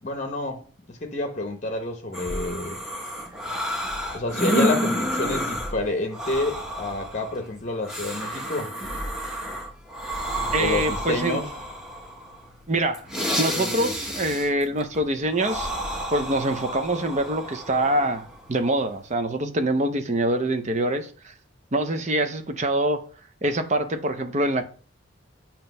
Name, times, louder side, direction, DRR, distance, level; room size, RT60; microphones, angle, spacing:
voice 1, 0.0-0.6 0.9-2.8 4.1-8.7 10.6-11.5, left 2 dB, 35° left, 0.8 m, -28 dB
sound 1, 2.1-19.1, equal, 5° right, 1.0 m, -30 dB
voice 2, 10.5-11.4 12.7-13.0 13.4-15.7 16.1-21.3 21.7-23.0 23.4-24.6, right 1 dB, 35° right, 0.6 m, -25 dB
7.3 x 2.9 x 5.3 m
head